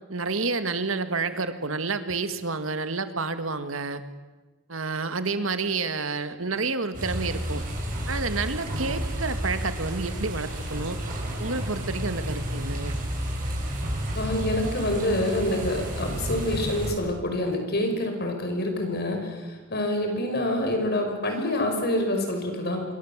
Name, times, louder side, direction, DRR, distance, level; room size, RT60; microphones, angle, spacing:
voice 1, 0.1-4.0 4.7-7.6 8.1-11.0 11.4-13.0, right 3 dB, 80° right, 10 dB, 1.9 m, -29 dB
sound 1, 6.9-16.9, right 1 dB, 45° right, 7.7 m, -31 dB
voice 2, 14.1-19.4 19.7-22.8, left 1 dB, 55° left, 4 dB, 5.9 m, -26 dB
26.5 x 23.5 x 7.4 m, 1.2 s
head